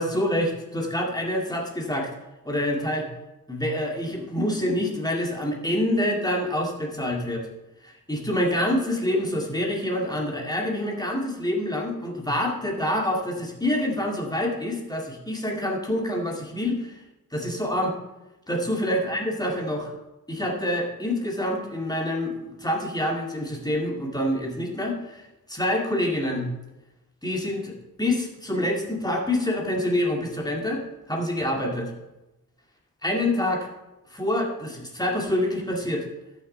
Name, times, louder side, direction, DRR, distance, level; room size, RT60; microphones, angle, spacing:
voice 1, 0.0-2.1 2.5-3.1 3.5-7.5 7.8-17.0 17.3-18.0 18.5-19.9 20.3-26.5 27.2-27.7 28.0-30.8 31.1-31.9 33.0-33.7 34.1-36.1, left 1 dB, 10° left, 0 dB, 2.3 m, -26 dB
12.5 x 6.5 x 4.4 m, 1.0 s
wide cardioid pair, 60°, 37 cm